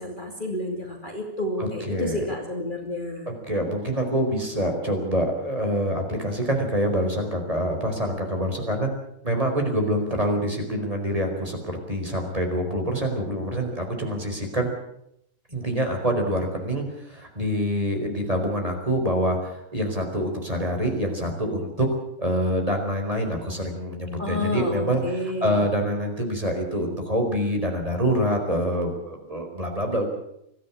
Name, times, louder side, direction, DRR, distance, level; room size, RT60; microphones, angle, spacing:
voice 1, 0.0-3.3 24.2-25.6, left 1 dB, 25° left, 2 dB, 3.0 m, -30 dB
voice 2, 1.6-2.2 3.3-8.9 9.2-14.7 15.5-21.9 22.2-25.0 25.4-30.1, equal, 20° right, 2 dB, 5.0 m, -26 dB
24.5 x 15.5 x 8.6 m, 0.77 s
omnidirectional pair, 1.8 m